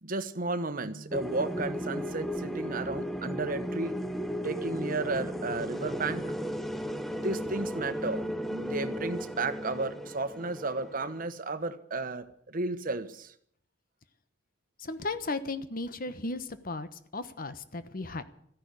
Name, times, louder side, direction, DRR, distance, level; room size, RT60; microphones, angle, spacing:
voice 1, 0.0-4.0 4.4-6.3 7.1-8.2 8.5-13.3, right 3 dB, 50° right, 11 dB, 1.1 m, -33 dB
sound 1, 1.1-11.3, equal, ahead, 0.9 m, -35 dB
voice 2, 14.8-18.2, left 3 dB, 50° left, 12 dB, 1.1 m, -35 dB
14.0 x 10.5 x 9.6 m, 0.65 s
head